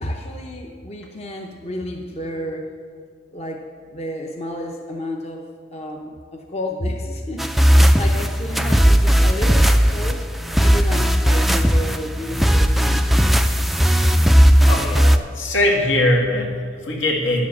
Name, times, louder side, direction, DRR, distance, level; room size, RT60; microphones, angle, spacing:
voice 1, 0.0-2.7 3.3-3.6 3.9-5.4 5.7-7.5 7.7-10.3 10.6-13.1, left 1 dB, 35° left, 1 dB, 0.7 m, -31 dB
sound 1, 7.4-15.2, equal, ahead, 0.3 m, -16 dB
voice 2, 14.6-17.5, left 1 dB, 80° left, -1 dB, 2.1 m, -21 dB
10.5 x 7.4 x 7.1 m, 2.1 s
head